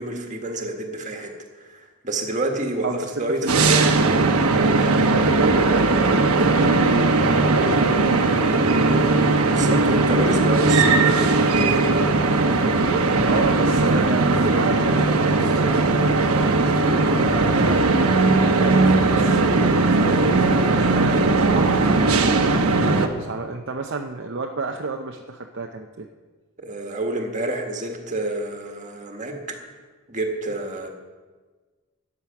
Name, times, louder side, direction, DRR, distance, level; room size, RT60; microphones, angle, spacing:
voice 1, 0.0-1.3 1.6-3.9 9.5-11.9 26.6-29.6 30.1-30.9, right 2 dB, 35° right, 3 dB, 1.8 m, -28 dB
voice 2, 2.8-3.8 5.1-8.9 9.1-9.4 13.2-18.2 18.7-19.4 20.1-22.4 22.8-26.1, right 3 dB, 55° right, 3 dB, 0.7 m, -30 dB
sound 1, 3.5-23.1, right 3 dB, 85° right, 1.1 m, -18 dB
13.5 x 9.9 x 5.9 m, 1.4 s
head